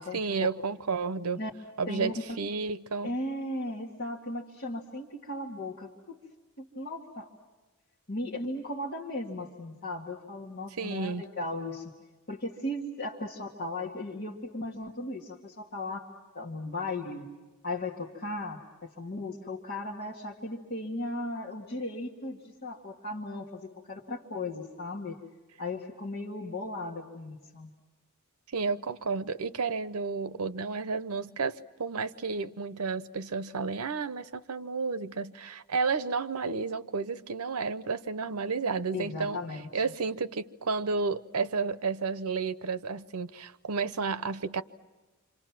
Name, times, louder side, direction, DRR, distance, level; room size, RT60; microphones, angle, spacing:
voice 1, 0.1-1.4 1.8-3.1 10.8-11.2 28.5-39.4 39.7-44.6, right 4 dB, 85° right, 0.8 m, -31 dB
voice 2, 3.0-6.2 6.6-7.3 8.1-11.9 12.3-16.1 16.3-17.3 17.6-25.2 25.6-27.7 38.9-39.8, left 2 dB, 45° left, 2.2 m, -36 dB
29.5 x 26.0 x 6.0 m
head